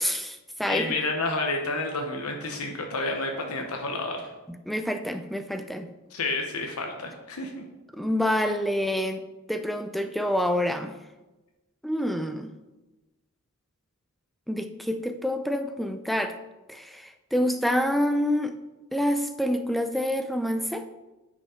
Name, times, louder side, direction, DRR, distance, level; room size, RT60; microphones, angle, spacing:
voice 1, 0.0-0.8 4.5-5.9 7.9-9.2 9.5-10.9 11.8-12.5 14.5-16.3 16.7-18.5 18.9-20.9, equal, ahead, 7 dB, 0.4 m, -27 dB
voice 2, 0.7-4.3 6.1-7.6 8.4-8.5, left 3 dB, 80° left, 2 dB, 1.1 m, -30 dB
9.6 x 5.4 x 4.9 m, 1.1 s
head